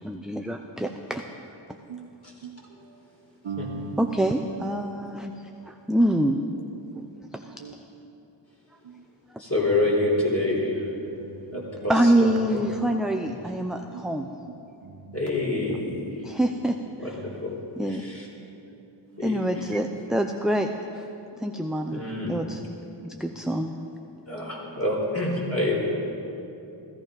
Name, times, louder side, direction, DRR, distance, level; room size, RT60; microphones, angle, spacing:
voice 1, 0.0-1.2 4.0-5.3 5.7-6.4 7.0-7.1 7.3-7.4 11.9-14.3 16.2-16.8 17.8-18.0 19.2-21.0 21.4-22.0 22.3-22.6 23.0-23.8, right 1 dB, ahead, 0.6 m, -25 dB
voice 2, 2.4-3.0 3.4-4.4 6.9-7.0 7.4-7.8 8.8-9.0 10.7-11.9 13.9-14.5 14.8-15.4 16.2-16.4 17.2-17.4 18.6-19.5, right 4 dB, 90° right, 1.0 m, -41 dB
voice 3, 9.4-10.9 11.5-12.3 12.6-12.7 15.1-16.1 17.0-17.5 17.9-18.3 19.2-19.6 21.9-22.4 24.3-25.8, left 2 dB, 30° left, 4.4 m, -27 dB
16.0 x 14.5 x 5.3 m
wide cardioid pair, 60°, 46 cm